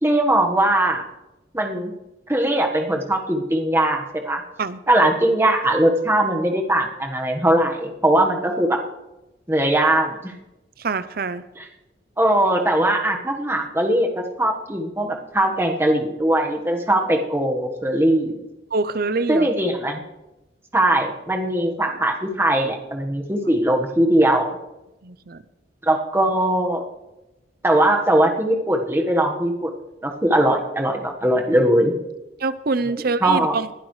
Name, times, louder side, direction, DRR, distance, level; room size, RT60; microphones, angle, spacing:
voice 1, 0.0-1.0 1.5-1.9 2.3-4.4 4.9-8.8 9.5-10.3 11.6-11.7 12.2-18.4 19.3-20.0 20.7-24.5 25.8-26.8 27.6-29.7 30.0-31.9 32.9-33.6, right 1 dB, 15° right, 2 dB, 1.4 m, -20 dB
voice 2, 10.8-11.4 18.7-19.5 25.0-25.4 32.4-33.8, right 3 dB, 55° right, 15 dB, 0.6 m, -25 dB
21.5 x 11.0 x 3.3 m, 0.97 s
head